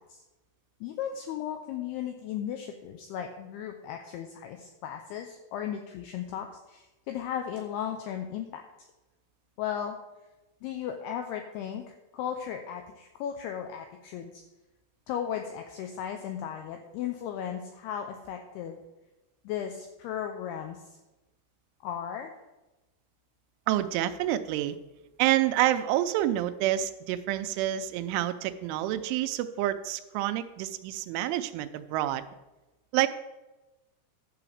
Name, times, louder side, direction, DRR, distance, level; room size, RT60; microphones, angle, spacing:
voice 1, 0.8-8.6 9.6-10.0 10.6-14.4 15.1-18.8 19.4-20.9 21.8-22.4, left 9 dB, 85° left, 5 dB, 2.3 m, -36 dB
voice 2, 23.7-24.8 25.2-32.3 32.9-33.1, right 13 dB, 85° right, 10 dB, 3.1 m, -28 dB
12.0 x 4.9 x 7.2 m, 1.0 s
omnidirectional pair, 5.4 m